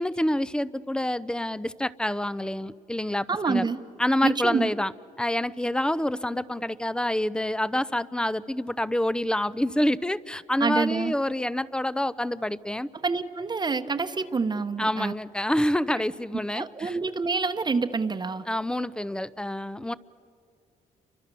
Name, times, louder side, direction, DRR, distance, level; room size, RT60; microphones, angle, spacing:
voice 1, 0.0-3.7 4.0-4.9 5.2-12.9 14.8-17.0 18.5-20.0, left 1 dB, 5° left, 18 dB, 0.7 m, -27 dB
voice 2, 3.3-3.8 4.2-4.7 10.6-11.1 13.0-15.1 16.5-18.4, right 4 dB, 30° right, 7 dB, 1.1 m, -27 dB
29.5 x 24.5 x 6.9 m, 2.5 s
cardioid pair, 95°, 14 cm